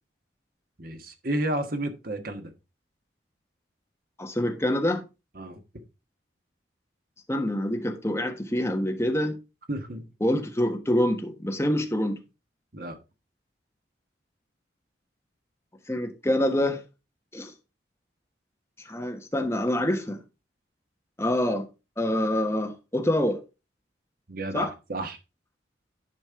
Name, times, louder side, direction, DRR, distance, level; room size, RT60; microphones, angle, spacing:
voice 1, 0.8-2.5 5.3-5.6 9.7-10.1 12.7-13.0 24.3-25.2, right 1 dB, 50° right, 1.4 m, -32 dB
voice 2, 4.2-5.0 7.3-9.4 10.2-12.2 15.9-16.8 17.3-17.5 18.8-20.2 21.2-21.7 22.0-23.4 24.5-24.7, left 1 dB, 15° left, 1.3 m, -26 dB
10.5 x 5.3 x 3.7 m
head